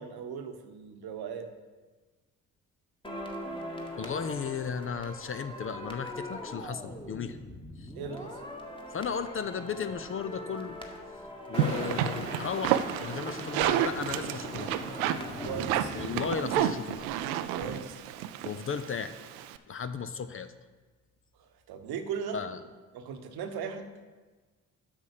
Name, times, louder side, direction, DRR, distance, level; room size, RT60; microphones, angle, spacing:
voice 1, 0.0-1.5 7.9-8.4 11.6-11.9 15.4-15.9 17.5-18.0 21.7-22.4 22.9-23.9, right 7 dB, 60° right, 7 dB, 1.1 m, -38 dB
sound 1, 3.0-17.2 17.4-17.7, left 1 dB, 10° left, 1.5 m, -41 dB
voice 2, 4.0-7.4 7.8-7.9 8.9-10.8 11.5-14.8 15.9-17.1 18.4-19.2 19.7-20.5 22.3-22.6, left 6 dB, 30° left, 11 dB, 0.5 m, -35 dB
sound 2, 11.5-19.6, right 11 dB, 75° right, 0.6 m, -31 dB
8.1 x 6.1 x 6.6 m, 1.3 s
hypercardioid pair, 45°, 43 cm